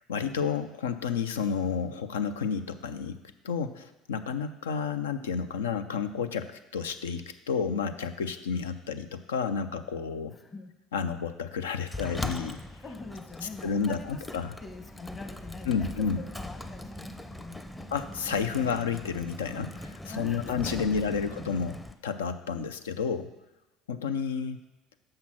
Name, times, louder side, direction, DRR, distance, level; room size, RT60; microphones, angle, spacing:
voice 1, 0.0-3.2 3.4-10.4 10.9-12.6 13.6-14.5 15.7-16.2 17.9-21.8 22.0-23.3 23.9-24.6, left 6 dB, 85° left, 10 dB, 0.4 m, -31 dB
voice 2, 10.3-10.7 12.8-14.3 14.6-17.9 20.1-21.4, left 3 dB, 30° left, 6 dB, 1.1 m, -44 dB
Sliding door, 11.9-21.9, left 1 dB, 10° left, 0.6 m, -41 dB
6.4 x 5.7 x 6.0 m, 1.0 s
hypercardioid pair, 70°, 0 cm